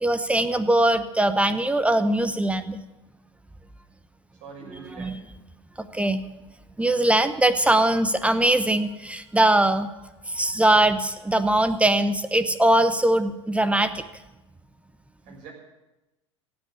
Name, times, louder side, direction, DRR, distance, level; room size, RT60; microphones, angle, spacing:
voice 1, 0.0-2.8 4.7-5.2 5.8-6.2 6.8-9.9 10.3-14.0, right 1 dB, 10° right, 12 dB, 0.9 m, -21 dB
voice 2, 4.4-5.2 15.2-15.5, right 5 dB, 50° right, 0 dB, 6.4 m, -43 dB
16.5 x 8.6 x 8.3 m, 1.0 s
hypercardioid pair, 80°, 15 cm